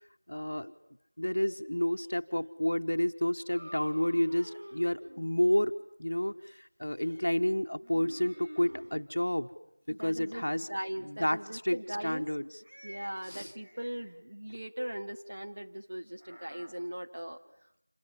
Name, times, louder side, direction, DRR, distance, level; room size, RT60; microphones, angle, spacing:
voice 1, 0.3-0.7 1.2-5.7 6.0-9.5 9.9-10.7 11.0-12.6 13.2-13.5, left 1 dB, 45° left, 8 dB, 1.2 m, -30 dB
sound 1, 3.4-5.3 7.8-8.9 9.8-10.7 12.6-14.2 16.2-16.7, equal, 45° right, 5.9 m, -49 dB
voice 2, 10.0-10.4 10.7-12.3 12.8-17.4, right 1 dB, 25° right, 3 dB, 1.0 m, -39 dB
28.0 x 27.5 x 7.5 m, 0.76 s
figure-of-eight pair, 180°, 0 cm